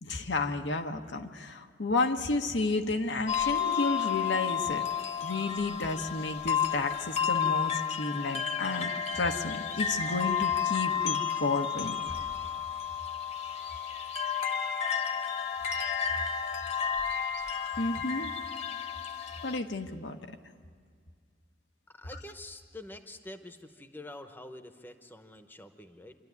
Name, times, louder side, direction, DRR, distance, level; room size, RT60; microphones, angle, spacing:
voice 1, 0.0-4.9 5.2-11.9 17.8-18.3 19.4-20.2, left 3 dB, 85° left, 5 dB, 1.1 m, -32 dB
sound 1, 3.3-19.6, left 8 dB, 40° left, 1.1 m, -32 dB
voice 2, 21.9-26.2, left 1 dB, 10° left, 7 dB, 0.9 m, -46 dB
27.0 x 12.0 x 9.4 m, 2.1 s
head